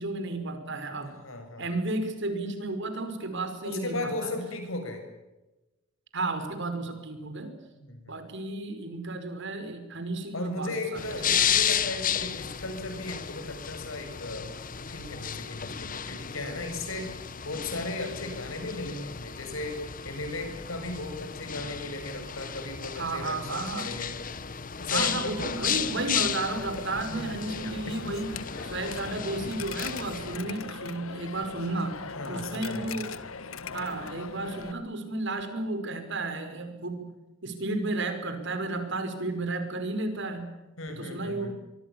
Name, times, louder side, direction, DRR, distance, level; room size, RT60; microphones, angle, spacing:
voice 1, 0.0-1.2 1.6-4.3 6.1-7.5 8.1-11.5 23.0-23.9 24.9-28.4 28.6-32.0 32.3-33.1 33.7-37.1 37.4-40.5 40.9-41.5, right 2 dB, 60° right, 8 dB, 5.4 m, -33 dB
voice 2, 1.2-1.7 3.6-5.0 7.8-8.1 10.3-14.5 14.9-24.1 24.8-25.4 27.1-27.4 30.3-30.5 32.1-33.0 40.8-41.5, left 2 dB, 70° left, 6 dB, 7.3 m, -36 dB
sound 1, 11.0-30.4, left 8 dB, 40° left, 1.1 m, -33 dB
Coin (dropping), 25.6-34.7, left 4 dB, 85° left, 1.7 m, -40 dB
24.5 x 24.0 x 7.1 m, 1.0 s
head